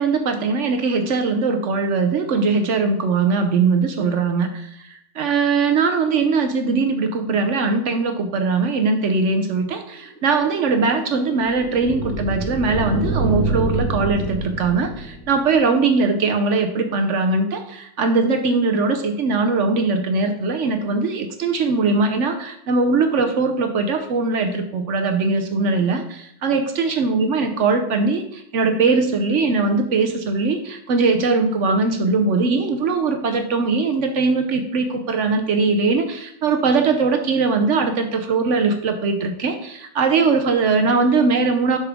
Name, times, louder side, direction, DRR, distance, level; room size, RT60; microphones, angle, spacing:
voice 1, 0.0-41.8, right 4 dB, 60° right, 6 dB, 0.9 m, -20 dB
sound 1, 10.0-15.6, right 2 dB, 10° left, 1.0 m, -27 dB
6.9 x 5.9 x 3.5 m, 0.71 s
omnidirectional pair, 1.7 m